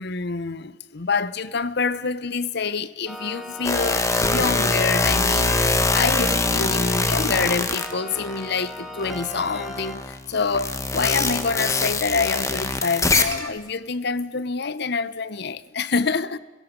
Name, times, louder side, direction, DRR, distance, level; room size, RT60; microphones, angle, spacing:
voice 1, 0.0-16.4, left 4 dB, 60° left, 0.8 m, -26 dB
sound 1, 3.1-10.0, equal, ahead, 2.3 m, -37 dB
sound 2, 3.6-8.6 9.0-13.5, left 3 dB, 15° left, 1.5 m, -23 dB
30.0 x 17.0 x 5.3 m
head